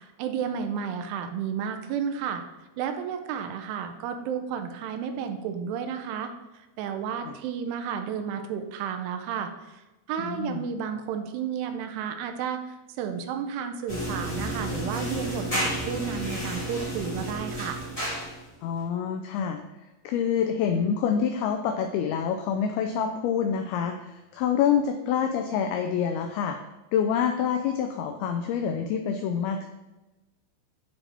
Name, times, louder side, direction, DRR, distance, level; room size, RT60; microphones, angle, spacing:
voice 1, 0.0-2.4 2.8-6.3 6.8-17.8, right 7 dB, 85° right, 6 dB, 2.7 m, -32 dB
voice 2, 10.2-10.7 18.6-19.6 20.0-26.6 26.9-29.7, left 7 dB, 80° left, 5 dB, 2.3 m, -27 dB
Clothes Dryer Shed, 13.9-18.5, right 1 dB, 15° left, 1.3 m, -31 dB
9.6 x 4.3 x 3.4 m, 1.1 s
omnidirectional pair, 4.8 m